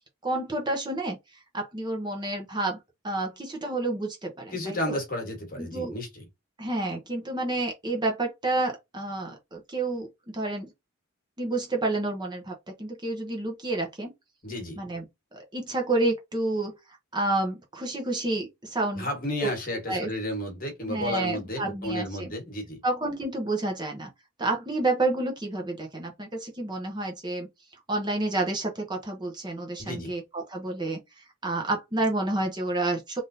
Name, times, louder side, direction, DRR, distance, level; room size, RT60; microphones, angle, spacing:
voice 1, 0.2-1.2 1.5-2.8 3.0-5.0 5.6-6.0 6.6-10.1 10.3-10.7 11.4-14.1 14.8-15.0 15.5-16.7 17.1-19.1 19.9-20.1 20.9-22.3 22.8-24.1 24.4-27.5 27.9-31.0 31.4-33.2, right 2 dB, 20° right, 0.8 m, -29 dB
voice 2, 4.5-6.2 14.4-14.8 18.9-22.8 29.8-30.1, left 1 dB, 40° left, 1.4 m, -32 dB
3.5 x 2.6 x 2.6 m
head